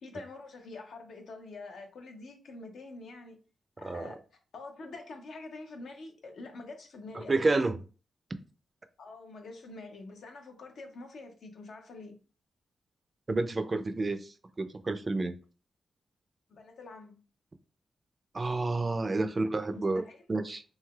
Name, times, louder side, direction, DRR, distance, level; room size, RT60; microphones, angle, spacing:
voice 1, 0.0-3.4 3.8-4.2 4.5-7.8 9.0-12.2 16.5-17.2 19.2-19.3 19.7-20.2, left 3 dB, 80° left, 0.7 m, -46 dB
voice 2, 3.8-4.1 7.1-7.8 13.3-14.3 14.6-15.3 18.3-20.6, right 2 dB, 35° right, 0.4 m, -30 dB
3.2 x 2.8 x 2.3 m
cardioid pair, 80°, 0 cm